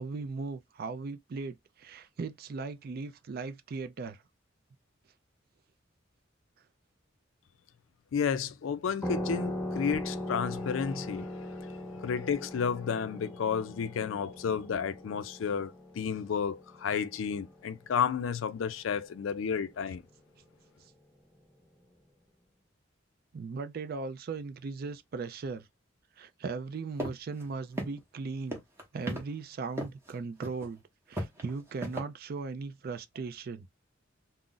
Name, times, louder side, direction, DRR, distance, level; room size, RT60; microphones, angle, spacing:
voice 1, 0.0-4.2 23.3-25.7 26.2-28.6 28.9-30.8 31.1-33.7, right 4 dB, 50° right, 0.4 m, -38 dB
voice 2, 8.1-11.5 12.0-20.0, left 7 dB, 80° left, 0.4 m, -32 dB
sound 1, 9.0-18.2, left 1 dB, 10° left, 0.5 m, -39 dB
sound 2, 27.0-27.1 27.4-27.5 27.8-28.2 28.5-29.2 29.8-30.1 30.4-30.7 31.1-32.0, right 1 dB, 15° right, 0.8 m, -34 dB
2.4 x 2.0 x 3.7 m
head